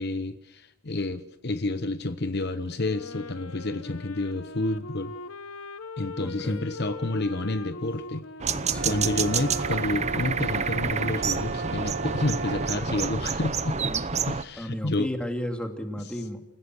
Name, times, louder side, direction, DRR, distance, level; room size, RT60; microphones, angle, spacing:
voice 1, 0.0-5.1 6.0-8.3 8.8-13.8 14.3-15.1, left 2 dB, 50° left, 10 dB, 1.0 m, -29 dB
Wind instrument woodwind instrument, 2.8-11.2, left 3 dB, 75° left, 1.2 m, -41 dB
voice 2, 6.2-6.7 8.7-9.1 13.8-14.0 14.6-16.4, equal, 5° left, 4 dB, 2.4 m, -33 dB
sound 1, 8.4-14.4, right 5 dB, 30° right, 0.9 m, -28 dB
sound 2, 8.7-12.8, right 4 dB, 50° right, 2.0 m, -36 dB
29.0 x 17.0 x 6.3 m, 0.88 s
head